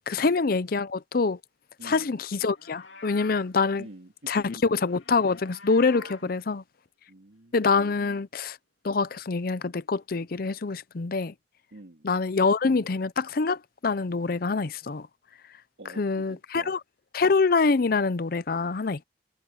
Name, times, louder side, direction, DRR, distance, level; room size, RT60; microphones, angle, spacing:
voice 1, 0.1-1.4 1.8-3.9 4.3-6.6 7.5-8.6 8.8-11.3 12.0-15.1 16.0-16.8 17.1-19.0, left 4 dB, 50° left, 0.6 m, -25 dB
voice 2, 1.8-2.1 3.8-4.6 6.2-6.4 7.1-7.6 11.7-12.1 15.8-16.8, right 1 dB, 75° right, 2.0 m, -47 dB
Livestock farm animals working animals, 2.5-3.5 4.8-6.3, left 3 dB, 85° left, 2.6 m, -47 dB
head